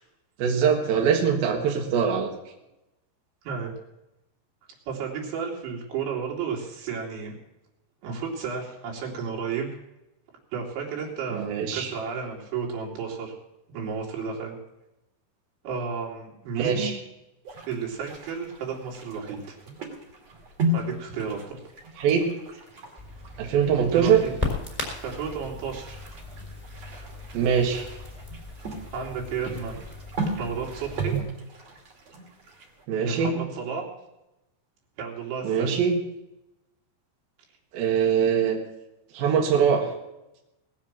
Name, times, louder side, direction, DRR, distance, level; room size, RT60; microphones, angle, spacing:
voice 1, 0.4-2.3 11.3-11.9 16.6-17.0 22.0-22.2 23.4-24.2 27.3-27.8 32.9-33.3 35.4-36.0 37.7-38.6 39.1-39.9, right 7 dB, 60° right, 0 dB, 3.1 m, -22 dB
voice 2, 4.9-7.3 8.0-9.7 10.5-13.3 13.7-14.6 15.6-16.9 17.6-19.6 20.7-21.6 23.9-24.3 25.0-26.0 28.9-29.8 30.3-31.2 33.1-33.8 35.0-35.8, right 6 dB, 80° right, -2 dB, 5.1 m, -32 dB
sound 1, 17.5-32.8, right 1 dB, 40° right, 3.2 m, -36 dB
Crackle, 23.0-31.2, left 3 dB, ahead, 4.0 m, -37 dB
19.0 x 7.5 x 7.4 m, 0.93 s
omnidirectional pair, 5.3 m